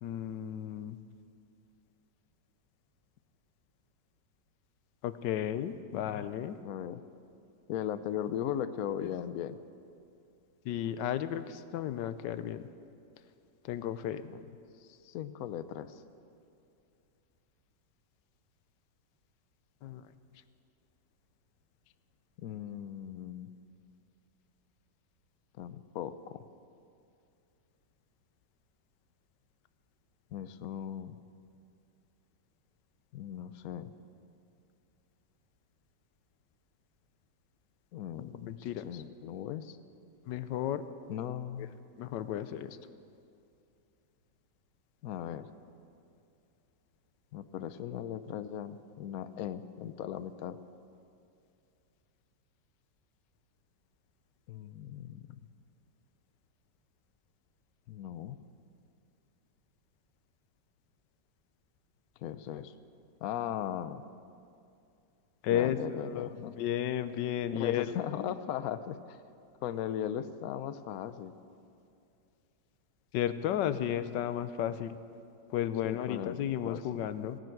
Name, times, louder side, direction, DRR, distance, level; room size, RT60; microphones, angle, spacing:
voice 1, 0.0-1.0 5.0-6.6 9.0-9.1 10.6-12.7 13.6-14.2 19.8-20.0 38.2-39.0 40.3-40.8 42.0-42.8 65.4-68.0 73.1-75.0 75.5-77.4, left 10 dB, 80° left, 13 dB, 1.3 m, -33 dB
voice 2, 5.9-6.3 6.6-7.0 7.7-9.6 14.3-14.4 14.8-16.0 22.4-23.5 25.6-26.4 30.3-31.2 33.1-33.9 37.9-39.8 41.1-41.7 45.0-45.5 47.3-50.6 54.5-55.4 57.9-58.4 62.2-62.7 63.2-64.0 65.5-66.5 67.5-69.2 69.6-71.3 75.8-76.4 76.6-77.1, left 10 dB, 65° left, 12 dB, 1.0 m, -38 dB
17.0 x 10.5 x 7.8 m, 2.5 s
omnidirectional pair, 1.9 m